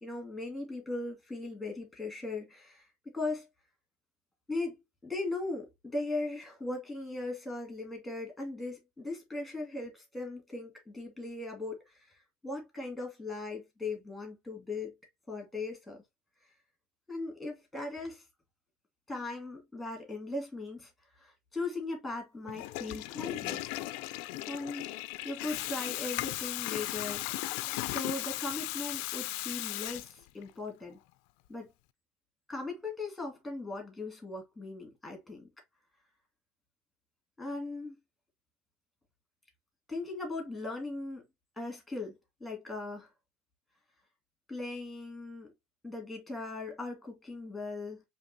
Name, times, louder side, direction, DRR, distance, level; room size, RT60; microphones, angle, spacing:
voice 1, 0.0-3.5 4.5-4.8 5.0-15.0 15.3-16.0 17.1-18.2 19.1-23.7 24.5-27.3 27.9-31.0 31.5-31.7 32.5-35.5 37.4-38.0 39.9-41.2 41.6-43.1 44.5-45.5 45.8-48.0, left 2 dB, 5° left, 1.8 m, -39 dB
Water tap faucet / Toilet flush, 22.5-30.5, left 18 dB, 70° left, 0.3 m, -36 dB
5.1 x 2.8 x 2.7 m
cardioid pair, 145°, 0 cm